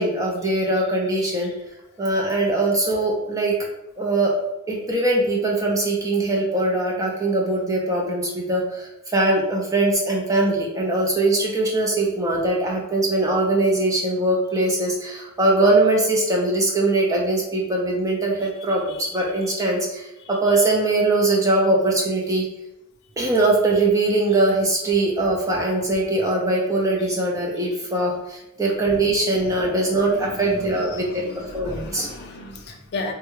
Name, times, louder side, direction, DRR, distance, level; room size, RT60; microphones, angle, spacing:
voice 1, 0.0-1.5 2.0-3.5 4.0-4.3 4.7-22.5 23.2-32.1, right 2 dB, 15° right, -2 dB, 0.5 m, -21 dB
voice 2, 30.7-33.1, left 2 dB, 50° left, 2 dB, 0.4 m, -34 dB
3.4 x 2.2 x 3.1 m, 0.91 s
head